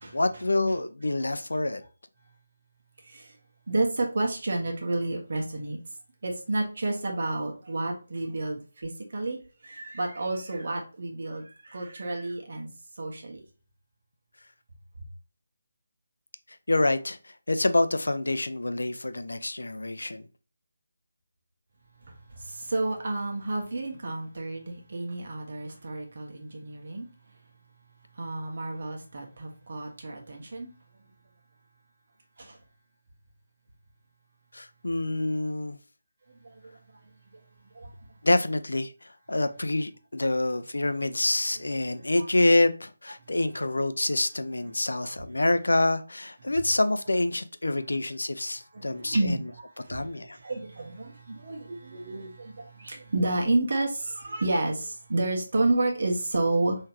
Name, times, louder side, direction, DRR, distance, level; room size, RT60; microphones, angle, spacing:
voice 1, 0.1-1.8 16.7-17.2 17.5-20.2 34.5-35.8 38.2-49.5 49.9-50.4, left 2 dB, 85° left, 11 dB, 0.5 m, -26 dB
voice 2, 3.7-5.8 6.2-9.4 9.6-11.4 11.7-12.7 13.0-13.4 22.7-27.1 28.2-30.7 41.9-42.0 43.5-43.7 45.0-45.1 48.7-49.4 49.9-50.0 50.4-52.5 52.8-56.8, right 2 dB, 55° right, 1 dB, 1.2 m, -30 dB
3.8 x 3.2 x 2.8 m, 0.35 s
figure-of-eight pair, 160°, 0 cm